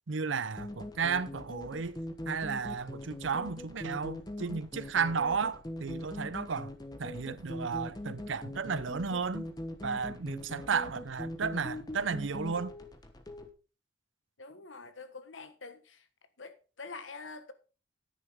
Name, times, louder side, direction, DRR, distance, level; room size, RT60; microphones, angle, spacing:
voice 1, 0.1-2.0 2.3-6.7 7.0-9.5 9.8-12.7, right 5 dB, 80° right, 0.7 m, -33 dB
sound 1, 0.6-13.5, left 1 dB, 20° left, 1.2 m, -42 dB
voice 2, 14.4-16.1 16.4-17.5, left 4 dB, 85° left, 1.4 m, -46 dB
11.0 x 10.5 x 3.6 m
head